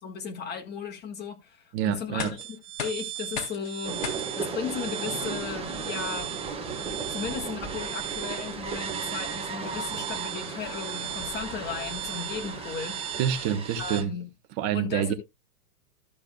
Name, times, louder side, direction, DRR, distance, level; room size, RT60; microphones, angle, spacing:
voice 1, 0.0-2.4 2.8-6.3 7.1-13.0 13.8-14.3 14.7-15.1, left 6 dB, 20° left, 1.7 m, -36 dB
voice 2, 1.7-2.3 13.2-14.1 14.6-15.1, right 9 dB, 35° right, 1.2 m, -27 dB
sound 1, 2.0-13.9, left 7 dB, 65° left, 3.0 m, -44 dB
sound 2, 2.4-14.0, right 15 dB, 50° right, 0.8 m, -38 dB
sound 3, 3.8-14.0, right 4 dB, 10° right, 1.4 m, -36 dB
14.0 x 6.9 x 2.3 m
hypercardioid pair, 135°, 46 cm